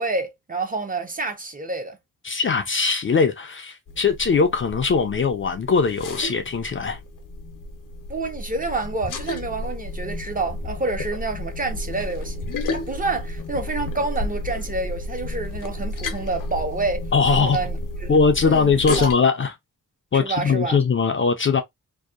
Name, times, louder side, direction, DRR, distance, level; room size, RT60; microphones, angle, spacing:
voice 1, 0.0-2.0 8.1-12.4 12.7-18.2 18.4-18.7 19.0-19.1 20.1-20.8, right 3 dB, 25° right, 0.5 m, -28 dB
voice 2, 2.2-7.0 17.1-17.6 18.1-19.5 20.1-21.6, left 5 dB, 40° left, 0.4 m, -20 dB
sound 1, 3.9-19.1, left 2 dB, 65° left, 0.7 m, -32 dB
2.7 x 2.1 x 2.3 m
wide cardioid pair, 115°, 34 cm